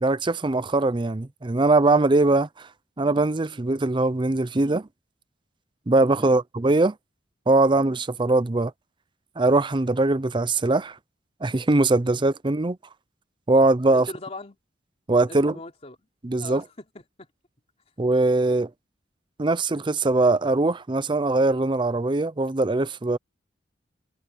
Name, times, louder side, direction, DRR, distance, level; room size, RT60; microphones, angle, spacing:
voice 1, 0.0-2.5 3.0-4.9 5.9-6.9 7.5-8.7 9.4-10.9 11.4-12.8 13.5-14.1 15.1-15.5 16.2-16.6 18.0-18.7 19.4-23.2, right 2 dB, 25° right, 0.6 m, -21 dB
voice 2, 13.9-14.6 15.3-16.0 16.4-17.3 18.4-18.6, left 2 dB, 35° left, 3.5 m, -41 dB
head